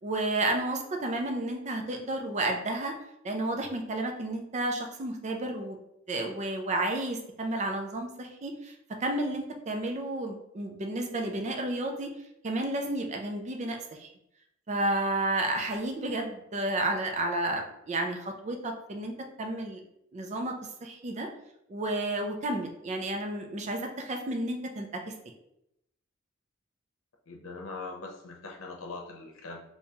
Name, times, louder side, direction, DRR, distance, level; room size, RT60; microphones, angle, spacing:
voice 1, 0.0-2.9 3.2-5.8 6.1-12.1 12.4-14.1 14.7-19.8 20.1-21.3 21.7-25.0, right 2 dB, 35° right, 3 dB, 0.5 m, -31 dB
voice 2, 27.3-29.6, left 3 dB, 80° left, 1 dB, 0.7 m, -41 dB
3.4 x 2.8 x 2.8 m, 0.80 s
head